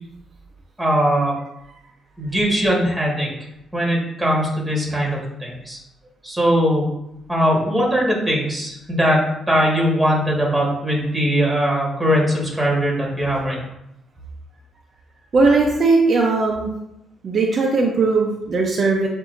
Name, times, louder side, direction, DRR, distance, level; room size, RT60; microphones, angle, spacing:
voice 1, 0.8-1.3 2.2-3.3 3.7-5.8 6.2-6.8 7.3-13.6, equal, 5° right, -3 dB, 1.6 m, -20 dB
voice 2, 15.3-16.7 17.2-19.1, right 3 dB, 45° right, -1 dB, 0.6 m, -18 dB
7.1 x 2.7 x 2.5 m, 0.84 s
cardioid pair, 90°, 0 cm